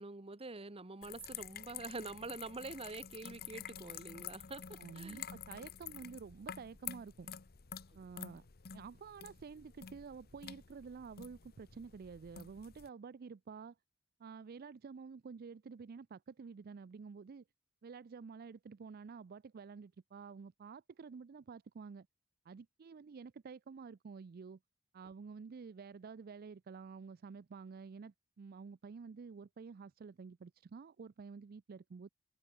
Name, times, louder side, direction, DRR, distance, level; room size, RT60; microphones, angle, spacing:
voice 1, 0.0-5.2, right 3 dB, 30° right, 1.1 m, -46 dB
sound 1, 1.0-12.9, left 9 dB, 50° left, 0.9 m, -50 dB
voice 2, 4.8-7.3 7.9-8.4 8.7-13.8 14.2-17.4 17.8-22.1 22.5-24.6 24.9-32.1, right 5 dB, 45° right, 0.4 m, -50 dB
head